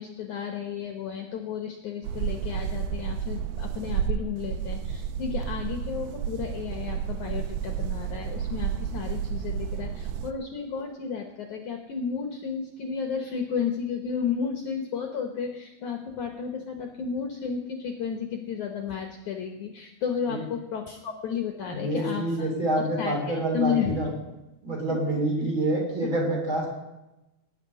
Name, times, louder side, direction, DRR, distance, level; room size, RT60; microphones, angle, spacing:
voice 1, 0.0-22.5 23.0-24.1 25.1-25.2 26.0-26.1, left 7 dB, 65° left, 3 dB, 2.1 m, -32 dB
sound 1, 2.0-10.3, right 8 dB, 85° right, 2.6 m, -31 dB
voice 2, 21.7-24.1 24.6-26.7, right 1 dB, 30° right, -1 dB, 3.7 m, -27 dB
18.5 x 6.3 x 9.7 m, 1.0 s
omnidirectional pair, 4.5 m